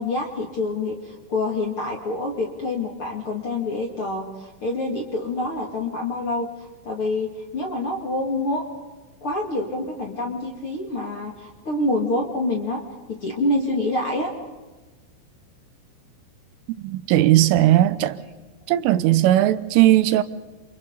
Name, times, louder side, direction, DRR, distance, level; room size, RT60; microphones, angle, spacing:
voice 1, 0.0-6.5 6.8-8.6 9.2-12.8 13.1-14.3, left 2 dB, 40° left, 2.2 m, -26 dB
voice 2, 16.8-18.2 18.7-20.2, right 14 dB, 85° right, 3.4 m, -18 dB
29.5 x 28.5 x 4.0 m
omnidirectional pair, 5.6 m